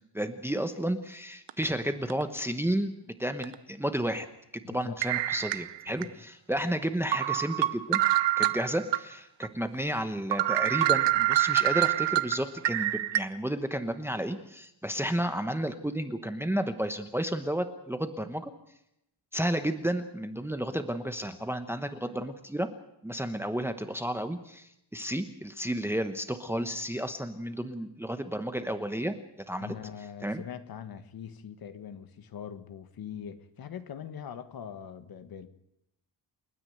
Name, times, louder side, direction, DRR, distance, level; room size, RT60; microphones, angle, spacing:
voice 1, 0.1-2.9 3.2-4.3 4.5-8.0 8.4-18.5 19.3-22.7 23.0-29.2 29.5-29.7 30.2-30.4, right 1 dB, 5° right, 1.0 m, -32 dB
sound 1, 1.5-1.6 2.1-2.2 3.4-3.6 5.0-6.1 6.5-6.6 7.1-9.0 9.4-9.5 9.9-10.0 10.3-13.2, right 14 dB, 75° right, 1.0 m, -26 dB
voice 2, 4.6-4.9 5.9-6.0 29.6-35.5, left 8 dB, 55° left, 1.6 m, -42 dB
29.0 x 9.8 x 9.2 m
cardioid pair, 155°, 43 cm